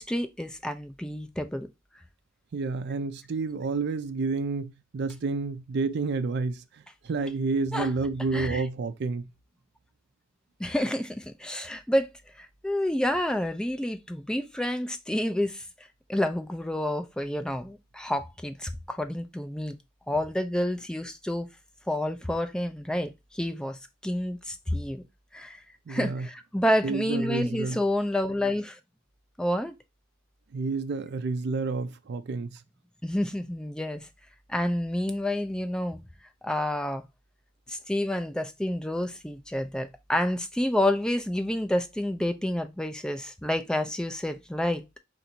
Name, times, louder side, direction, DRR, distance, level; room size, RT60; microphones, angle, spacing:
voice 1, 0.0-1.7 7.7-7.9 8.3-8.6 10.6-12.1 12.4-15.6 16.1-19.8 20.1-21.5 21.9-25.0 25.3-25.6 25.9-28.8 29.4-29.7 33.0-34.0 34.5-36.0 36.4-37.0 37.7-44.8, left 1 dB, 5° left, 0.4 m, -29 dB
voice 2, 2.5-6.6 7.0-9.3 25.9-26.3 26.8-27.8 30.5-32.6, right 4 dB, 60° right, 0.4 m, -29 dB
3.9 x 2.6 x 4.3 m
head